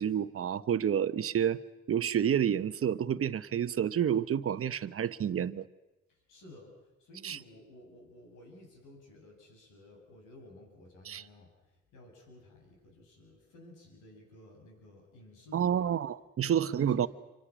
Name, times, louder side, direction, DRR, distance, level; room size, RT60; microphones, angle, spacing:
voice 1, 0.0-1.6 1.9-5.7 7.2-7.4 11.0-11.2 15.5-17.1, right 9 dB, 50° right, 13 dB, 1.0 m, -29 dB
voice 2, 6.1-15.9 16.4-17.1, left 1 dB, 85° left, 1 dB, 7.7 m, -54 dB
26.5 x 25.0 x 6.2 m, 0.99 s
cardioid pair, 90°, 30 cm